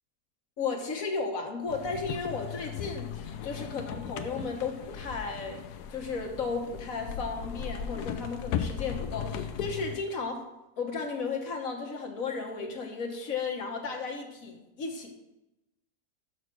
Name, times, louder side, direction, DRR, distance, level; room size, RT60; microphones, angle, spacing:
voice 1, 0.6-5.6 5.9-10.5 10.8-15.1, left 4 dB, 60° left, 2 dB, 1.6 m, -34 dB
sound 1, 1.7-10.0, left 8 dB, 85° left, 1.2 m, -37 dB
6.6 x 5.9 x 6.1 m, 0.94 s
omnidirectional pair, 1.7 m